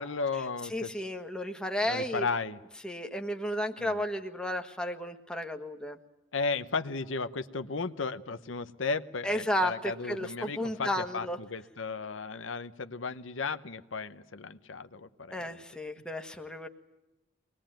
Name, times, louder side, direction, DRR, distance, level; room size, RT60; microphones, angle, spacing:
voice 1, 0.0-0.9 1.8-2.6 3.8-4.0 6.3-15.6, left 4 dB, 80° left, 10 dB, 1.0 m, -35 dB
voice 2, 0.7-2.3 2.8-6.0 9.2-11.4 15.3-16.7, equal, 5° left, 5 dB, 1.5 m, -33 dB
24.0 x 20.0 x 9.0 m, 0.97 s
head